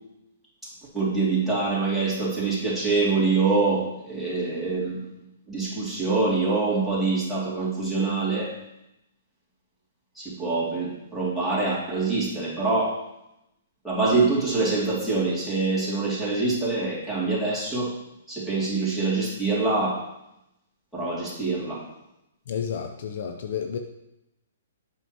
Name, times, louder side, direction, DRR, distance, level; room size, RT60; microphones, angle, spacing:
voice 1, 0.9-5.0 5.5-8.5 10.2-13.1 13.8-18.0 18.3-20.0 20.9-21.8, right 3 dB, 5° left, -7 dB, 2.6 m, -25 dB
voice 2, 22.5-23.8, left 8 dB, 60° left, 5 dB, 0.6 m, -31 dB
7.9 x 6.0 x 3.0 m, 0.86 s
hypercardioid pair, 125°, 0 cm